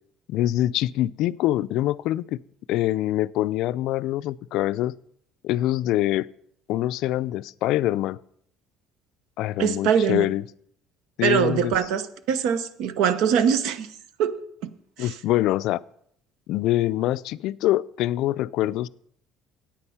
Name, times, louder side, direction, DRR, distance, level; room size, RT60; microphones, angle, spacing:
voice 1, 0.3-2.4 2.7-4.9 5.4-6.3 6.7-8.2 9.4-10.4 11.2-11.7 15.0-15.8 16.5-18.9, left 14 dB, 70° left, 0.3 m, -24 dB
voice 2, 9.6-10.3 11.2-13.9 14.2-14.4 15.0-15.2, right 8 dB, 75° right, 0.8 m, -23 dB
10.0 x 8.9 x 5.6 m
cardioid pair, 125°, 0 cm